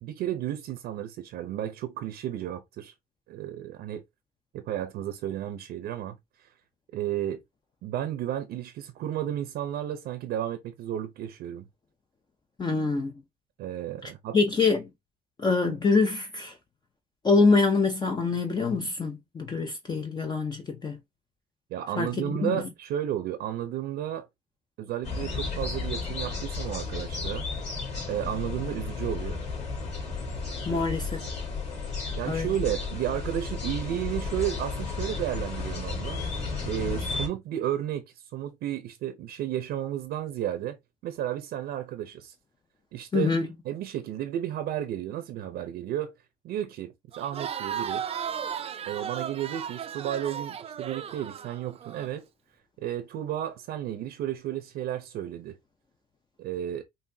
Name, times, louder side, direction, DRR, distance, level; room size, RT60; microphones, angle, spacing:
voice 1, 0.0-2.9 3.3-4.0 4.5-6.5 6.9-7.4 7.8-11.7 13.6-14.4 21.7-24.3 24.8-27.5 28.1-29.4 30.7-30.8 32.2-36.2 36.6-40.8 41.0-42.3 42.9-43.3 43.6-46.1 46.4-48.0 48.9-52.2 52.8-55.5 56.4-56.8, right 11 dB, 75° right, 0.7 m, -33 dB
voice 2, 12.6-13.1 14.3-14.8 15.4-16.5 17.2-21.0 22.0-22.6 30.7-31.2 32.3-32.5 43.1-43.5, left 4 dB, 25° left, 0.7 m, -25 dB
sound 1, 25.0-37.3, left 4 dB, 40° left, 3.0 m, -33 dB
Crowd, 47.1-52.1, right 8 dB, 35° right, 0.5 m, -35 dB
5.5 x 2.7 x 2.7 m
cardioid pair, 110°, 17 cm